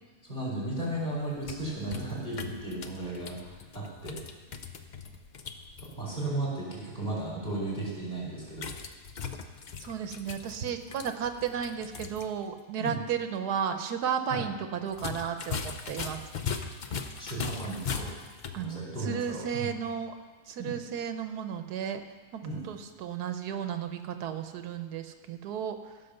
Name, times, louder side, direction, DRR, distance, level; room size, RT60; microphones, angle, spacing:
voice 1, 0.3-3.5 3.7-4.2 5.8-8.7 12.8-13.0 14.3-14.4 17.2-18.1 18.5-19.7 20.6-20.8 22.4-22.6, right 2 dB, 30° left, -6 dB, 4.1 m, -35 dB
sound 1, 1.2-5.9 8.5-12.3 12.6-12.7 14.9-18.6, left 6 dB, 65° left, 0.4 m, -39 dB
voice 2, 9.8-16.2 18.5-20.1 20.5-22.0 22.3-25.8, right 8 dB, 85° right, 8 dB, 1.3 m, -33 dB
15.5 x 5.9 x 6.6 m, 1.4 s
omnidirectional pair, 1.7 m